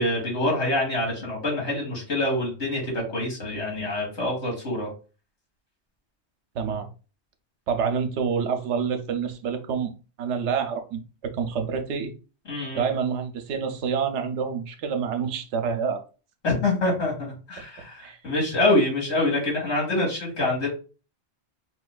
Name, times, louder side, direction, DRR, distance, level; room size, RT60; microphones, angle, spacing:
voice 1, 0.0-4.9 12.5-12.9 16.4-20.7, left 2 dB, 75° left, 1.9 m, -25 dB
voice 2, 6.5-6.9 7.7-9.9 10.2-12.1 12.7-16.0 18.0-18.2, right 6 dB, 80° right, 0.9 m, -27 dB
4.3 x 2.4 x 2.2 m
omnidirectional pair, 1.2 m